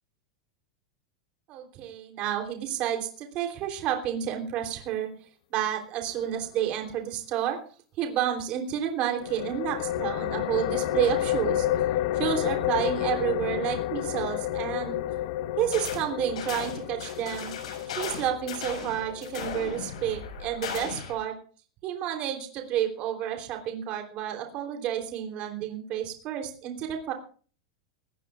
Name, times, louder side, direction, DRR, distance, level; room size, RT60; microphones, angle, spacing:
voice 1, 1.5-5.1 5.5-7.6 8.0-11.7 12.1-15.0 15.6-17.5 17.9-21.3 21.8-27.1, right 10 dB, 35° right, 3 dB, 3.4 m, -30 dB
sound 1, 9.2-20.6, left 13 dB, 50° left, 0.7 m, -31 dB
sound 2, 15.7-16.1 16.4-21.2, left 7 dB, 90° left, 6.0 m, -37 dB
20.5 x 17.5 x 2.5 m, 0.41 s
supercardioid pair, 160°, 3 cm